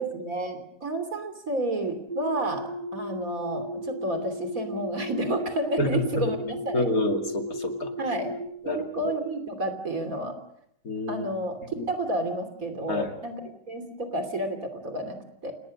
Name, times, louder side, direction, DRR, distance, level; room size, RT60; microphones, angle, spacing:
voice 1, 0.0-6.9 8.0-8.3 8.6-10.4 11.1-11.6 11.9-13.4 13.7-15.5, right 1 dB, 60° right, 8 dB, 3.5 m, -30 dB
sound 1, 2.1-8.5, equal, 15° left, 2.2 m, -35 dB
voice 2, 6.7-7.9 8.6-8.8 10.8-11.2 11.8-11.9 12.9-13.1, left 1 dB, 60° left, 5 dB, 2.9 m, -27 dB
28.5 x 18.5 x 6.5 m, 0.74 s
omnidirectional pair, 1.7 m